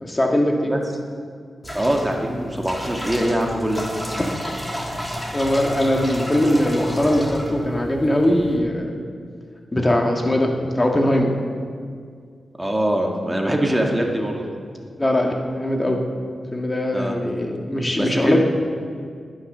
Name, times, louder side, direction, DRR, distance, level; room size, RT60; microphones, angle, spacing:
voice 1, 0.0-0.7 5.3-8.9 9.7-11.3 15.0-16.0 16.5-18.4, left 1 dB, 25° left, 1 dB, 1.9 m, -20 dB
sound 1, 1.6-8.6, equal, 10° left, 3.0 m, -31 dB
voice 2, 1.7-3.9 12.6-14.4 16.9-17.1 18.0-18.4, right 1 dB, 15° right, 1 dB, 1.8 m, -23 dB
19.5 x 6.5 x 6.8 m, 2.1 s
cardioid pair, 45°, 0 cm